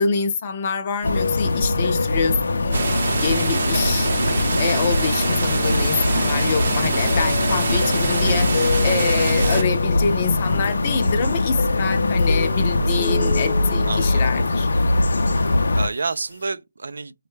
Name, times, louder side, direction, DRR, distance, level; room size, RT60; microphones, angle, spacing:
voice 1, 0.0-2.8 3.2-14.7, left 5 dB, 25° left, 0.5 m, -26 dB
sound 1, 1.0-15.9, left 2 dB, 75° left, 0.5 m, -22 dB
sound 2, 1.0-16.4, left 4 dB, 55° left, 0.8 m, -32 dB
sound 3, 2.7-9.6, right 3 dB, 40° right, 0.7 m, -24 dB
voice 2, 13.8-14.2 15.3-15.5 15.7-17.1, right 4 dB, 75° right, 0.4 m, -29 dB
5.3 x 2.2 x 3.1 m
hypercardioid pair, 180°, 0 cm